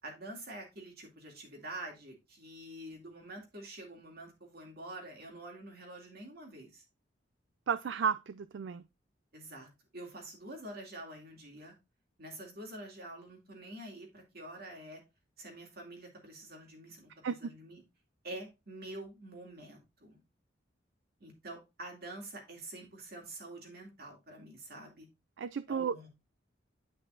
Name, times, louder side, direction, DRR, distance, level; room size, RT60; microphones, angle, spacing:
voice 1, 0.0-6.8 9.3-11.7 12.2-15.0 15.4-17.8 18.2-20.2 21.2-25.1 25.7-26.1, right 1 dB, 50° right, 2.4 m, -47 dB
voice 2, 7.7-8.8 17.2-17.5 25.4-26.1, right 7 dB, 70° right, 0.3 m, -33 dB
9.9 x 5.6 x 2.5 m
head